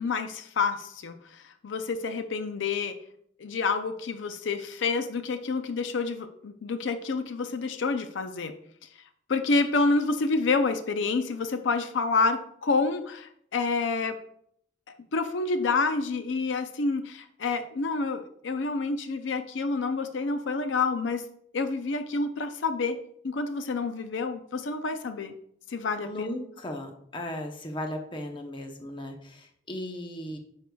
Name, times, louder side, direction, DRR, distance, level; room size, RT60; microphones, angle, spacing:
voice 1, 0.0-3.0 3.4-8.5 9.3-14.2 15.1-21.2 21.5-23.0 23.2-25.3 25.7-26.3, left 4 dB, 80° left, 9 dB, 0.5 m, -28 dB
voice 2, 26.0-30.4, left 1 dB, 25° left, 4 dB, 0.8 m, -36 dB
9.3 x 6.5 x 2.3 m, 0.70 s
head